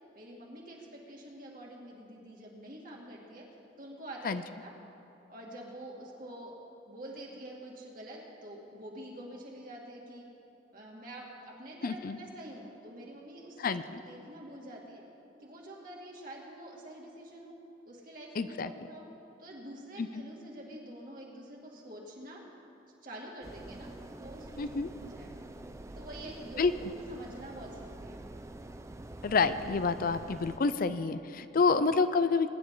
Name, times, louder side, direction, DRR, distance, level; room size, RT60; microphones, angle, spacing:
voice 1, 0.1-3.5 3.8-4.7 5.3-6.5 6.9-10.2 10.7-15.0 15.4-17.5 17.8-19.0 19.4-22.4 23.0-23.9 24.2-25.3 25.9-28.2, right 1 dB, 50° right, -2 dB, 2.5 m, -47 dB
voice 2, 11.8-12.2 13.6-13.8 18.4-18.7 20.0-20.1 24.6-24.9 26.6-26.7 29.2-32.5, left 4 dB, 50° left, 12 dB, 0.5 m, -28 dB
sound 1, 23.4-30.6, right 1 dB, 15° right, 0.5 m, -46 dB
22.5 x 10.5 x 3.9 m, 2.8 s
head